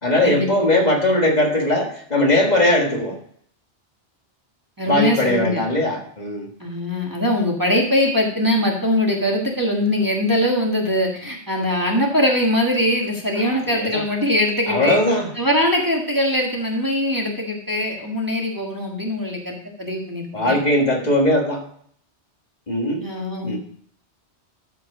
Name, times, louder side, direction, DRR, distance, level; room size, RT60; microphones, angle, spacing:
voice 1, 0.0-3.2 4.9-6.5 13.4-14.0 14.7-15.3 20.3-21.6 22.7-23.1 23.4-23.6, left 1 dB, 40° left, 0 dB, 1.8 m, -19 dB
voice 2, 4.8-5.6 6.6-15.0 15.4-20.6 23.0-23.6, left 1 dB, 20° right, -1 dB, 1.5 m, -22 dB
13.0 x 4.6 x 4.9 m, 0.62 s
omnidirectional pair, 1.2 m